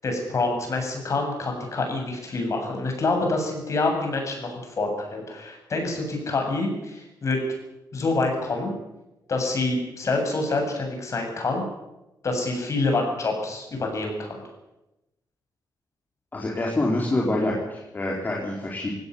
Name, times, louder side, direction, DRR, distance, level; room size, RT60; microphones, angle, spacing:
voice 1, 0.0-7.4 7.9-8.7 9.3-11.6 12.2-14.4, left 3 dB, 45° left, 3 dB, 8.0 m, -26 dB
voice 2, 16.3-18.9, left 1 dB, 25° left, -2 dB, 4.3 m, -26 dB
19.0 x 17.5 x 9.6 m, 0.95 s
cardioid pair, 115°, 7 cm